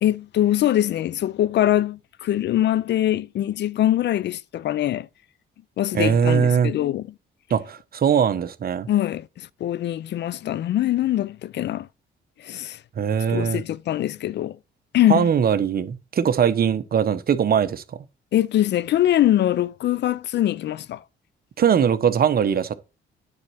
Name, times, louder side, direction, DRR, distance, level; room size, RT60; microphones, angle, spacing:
voice 1, 0.0-5.1 5.8-7.1 8.9-11.9 12.4-12.8 13.2-14.6 14.9-15.3 18.3-21.0, left 12 dB, 60° left, 0.5 m, -23 dB
voice 2, 5.9-6.7 7.5-8.9 13.0-13.6 15.1-17.8 21.6-22.8, right 7 dB, 50° right, 1.0 m, -21 dB
9.8 x 4.3 x 6.3 m
cardioid pair, 90°, 20 cm